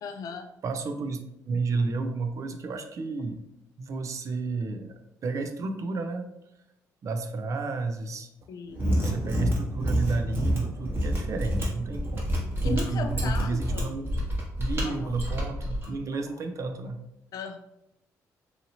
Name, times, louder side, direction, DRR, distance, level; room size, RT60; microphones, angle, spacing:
voice 1, 0.0-0.5 8.5-8.8 12.6-13.9 14.8-15.1 16.1-16.2 17.3-17.6, left 5 dB, 70° left, 6 dB, 0.3 m, -36 dB
voice 2, 0.6-1.2 1.5-3.4 3.8-4.9 5.2-6.3 7.0-8.3 9.0-14.1 14.6-17.0, right 3 dB, 55° right, 6 dB, 0.4 m, -31 dB
Mechanisms, 8.7-15.9, equal, 35° right, 1.1 m, -28 dB
2.8 x 2.6 x 2.8 m, 0.86 s
cardioid pair, 80°, 7 cm